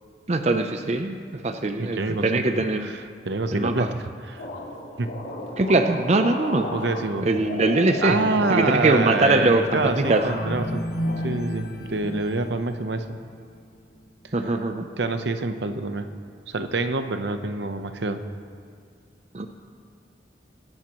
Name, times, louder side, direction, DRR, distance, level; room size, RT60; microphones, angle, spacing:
voice 1, 0.3-2.9 3.5-3.9 5.6-6.7 7.2-8.2 8.5-10.2 14.3-14.9 19.3-19.5, right 2 dB, 35° right, 6 dB, 0.5 m, -22 dB
voice 2, 1.8-2.4 2.8-4.5 5.0-5.1 6.7-7.3 8.0-10.8 11.2-13.1 14.2-14.3 15.0-16.1 16.5-18.2, right 2 dB, 70° right, 8 dB, 0.8 m, -27 dB
sound 1, 4.4-9.6 10.0-10.7 11.0-11.9, left 1 dB, 75° left, 2.4 m, -34 dB
sound 2, 8.1-13.3 13.8-14.0, left 1 dB, 55° left, 1.0 m, -33 dB
24.0 x 10.5 x 3.0 m, 2.2 s
head